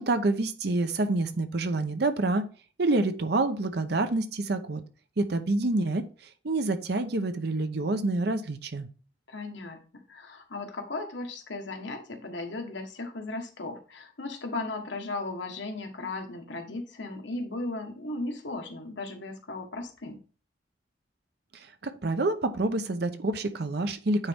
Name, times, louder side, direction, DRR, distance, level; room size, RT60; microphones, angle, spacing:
voice 1, 0.0-2.5 2.8-4.8 5.2-6.0 6.4-8.9 21.8-24.3, right 2 dB, 60° right, 9 dB, 0.7 m, -27 dB
voice 2, 9.3-9.8 10.1-20.2, left 2 dB, 80° left, 4 dB, 1.5 m, -36 dB
9.2 x 4.1 x 3.5 m, 0.37 s
head